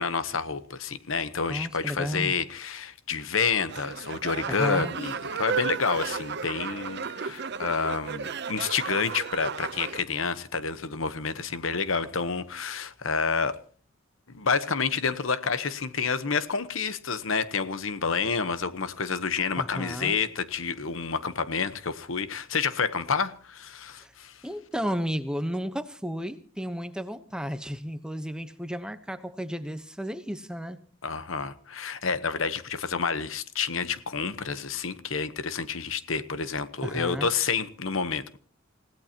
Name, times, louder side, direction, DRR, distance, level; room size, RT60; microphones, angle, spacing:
voice 1, 0.0-13.6 14.3-24.4 31.0-38.4, left 5 dB, 75° left, 1.1 m, -29 dB
voice 2, 1.5-2.3 4.5-4.9 19.6-20.2 24.0-24.1 24.4-30.8 36.8-37.3, equal, 5° right, 1.0 m, -33 dB
sound 1, 3.7-10.0, right 6 dB, 55° right, 0.7 m, -34 dB
28.5 x 17.0 x 2.9 m
head